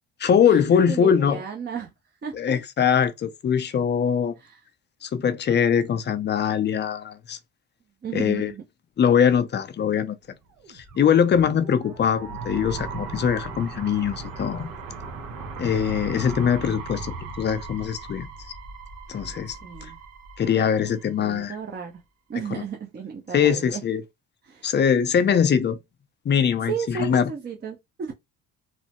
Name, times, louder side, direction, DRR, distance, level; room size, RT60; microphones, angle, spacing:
voice 1, 0.2-1.4 2.3-4.3 5.0-7.4 8.1-8.5 9.0-10.2 10.7-14.7 15.6-18.3 19.1-19.6 20.4-21.6 22.5-22.6 23.3-24.0 24.6-25.8 26.3-27.3, left 7 dB, 35° left, 0.5 m, -22 dB
voice 2, 0.9-1.9 2.2-2.4 4.4-4.6 8.0-8.6 19.6-20.0 21.2-21.9 22.3-23.8 24.4-24.7 26.7-28.1, right 7 dB, 30° right, 0.6 m, -33 dB
sound 1, 10.6-21.5, right 3 dB, 80° right, 1.0 m, -38 dB
3.0 x 2.0 x 2.9 m
supercardioid pair, 85°, 32 cm